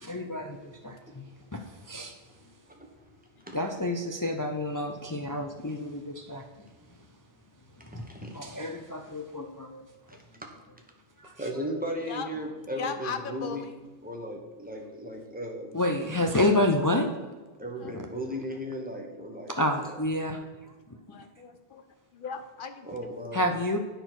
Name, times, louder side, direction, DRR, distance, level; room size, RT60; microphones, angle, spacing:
voice 1, 0.0-2.1 3.5-6.5 7.9-8.1 8.3-9.8 11.2-11.3 15.7-17.1 17.9-18.0 19.6-20.4 23.3-23.8, left 1 dB, 25° left, 4 dB, 0.4 m, -29 dB
voice 2, 2.7-3.1 3.4-3.6 8.1-8.4 10.1-10.5 11.4-13.7 14.0-15.7 17.6-20.0 22.8-23.5, equal, 10° right, 1 dB, 1.2 m, -36 dB
voice 3, 12.7-13.8 17.8-17.9 18.6-19.4 20.2-20.5 21.1-21.8 22.1-23.3, left 6 dB, 60° left, 8 dB, 0.9 m, -39 dB
9.3 x 4.4 x 5.9 m, 1.3 s
omnidirectional pair, 1.0 m